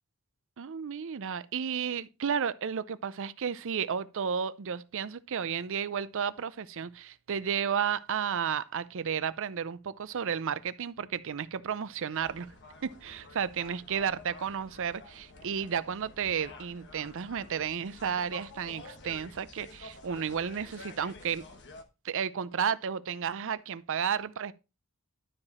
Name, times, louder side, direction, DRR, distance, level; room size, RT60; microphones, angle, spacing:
voice 1, 0.6-12.5 12.8-21.5 22.0-24.5, right 7 dB, 60° right, 0.5 m, -32 dB
sound 1, 12.1-21.8, left 3 dB, 55° left, 1.2 m, -50 dB
12.0 x 4.9 x 4.2 m
head